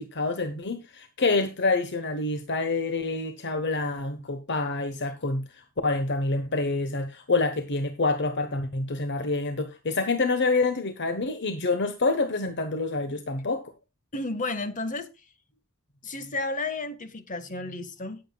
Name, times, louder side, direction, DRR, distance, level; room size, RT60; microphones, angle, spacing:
voice 1, 0.0-5.4 5.8-13.6, left 3 dB, 55° left, 1.1 m, -27 dB
voice 2, 14.1-15.1 16.0-18.2, left 2 dB, 35° left, 1.6 m, -32 dB
18.0 x 7.6 x 2.3 m
head